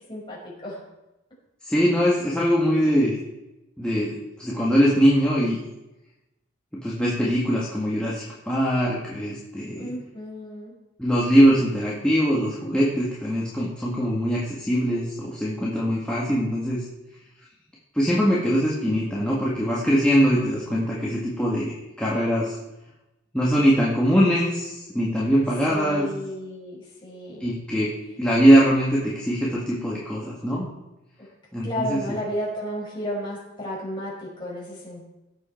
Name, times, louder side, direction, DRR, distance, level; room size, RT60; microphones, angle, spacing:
voice 1, 0.1-0.8 9.8-10.7 25.7-27.5 31.6-35.1, equal, 25° left, -4 dB, 5.5 m, -33 dB
voice 2, 1.7-3.1 3.8-5.6 6.7-9.9 11.0-16.8 17.9-21.7 22.0-22.6 23.3-26.1 27.4-27.9 28.2-30.7 31.5-32.0, equal, 5° left, -6 dB, 1.9 m, -22 dB
18.0 x 7.9 x 4.6 m, 0.95 s
head